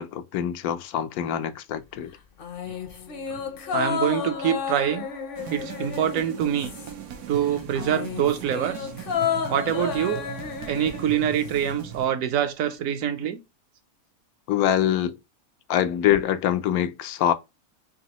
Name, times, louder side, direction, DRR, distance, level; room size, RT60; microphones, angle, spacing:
voice 1, 0.0-2.1 14.5-15.2 15.7-17.3, left 10 dB, 85° left, 1.1 m, -24 dB
sound 1, 2.4-7.2 7.4-11.7 12.0-12.1, left 7 dB, 55° left, 0.6 m, -32 dB
voice 2, 3.7-5.1 5.5-6.7 7.3-8.9 9.5-10.3 10.7-13.4, right 9 dB, 70° right, 1.0 m, -25 dB
sound 2, 5.4-12.1, right 8 dB, 90° right, 1.2 m, -39 dB
5.1 x 2.7 x 2.9 m
omnidirectional pair, 1.5 m